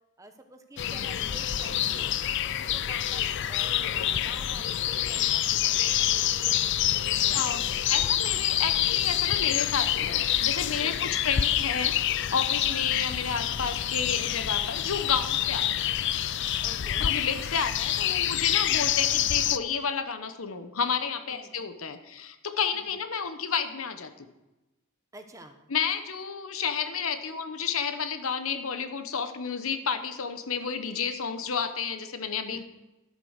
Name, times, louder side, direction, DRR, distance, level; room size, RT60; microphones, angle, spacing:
voice 1, 0.2-2.1 2.5-7.8 8.1-8.2 10.8-11.1 12.9-13.1 15.4-15.6 16.6-17.1 21.3-21.5 22.8-22.9 25.1-25.5 32.5-32.6, right 1 dB, 15° right, 6 dB, 1.0 m, -49 dB
sound 1, 0.8-19.6, left 11 dB, 55° left, 0.4 m, -27 dB
voice 2, 7.3-7.6 7.9-15.9 17.0-24.3 25.7-32.6, left 6 dB, 80° left, 9 dB, 1.0 m, -31 dB
12.0 x 7.6 x 6.5 m, 1.0 s
head